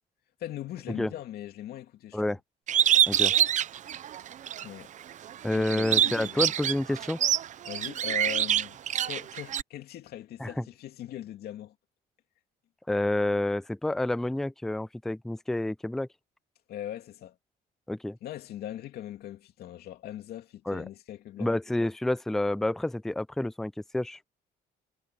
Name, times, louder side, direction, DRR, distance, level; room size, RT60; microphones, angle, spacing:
voice 1, 0.4-2.4 4.6-4.9 5.5-6.5 7.6-11.7 16.7-17.4 18.2-21.5, left 12 dB, 70° left, 2.7 m, -40 dB
Bird, 2.7-4.7 5.1-9.6, right 10 dB, 45° right, 0.6 m, -25 dB
voice 2, 5.4-7.2 10.4-10.6 12.9-16.1 17.9-18.2 20.7-20.9 21.4-24.3, left 1 dB, ahead, 0.4 m, -29 dB
cardioid pair, 110°, 17 cm